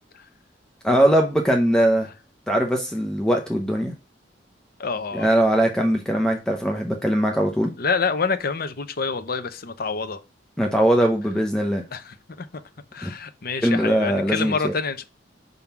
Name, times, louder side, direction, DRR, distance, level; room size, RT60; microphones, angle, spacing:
voice 1, 0.8-2.1 2.5-3.9 5.1-7.7 10.6-11.8 13.0-13.1 13.6-14.7, right 1 dB, 5° left, 0.8 m, -21 dB
voice 2, 4.8-5.3 7.8-10.2 11.9-12.5 12.9-15.0, left 5 dB, 55° left, 0.8 m, -27 dB
5.4 x 3.7 x 5.9 m
head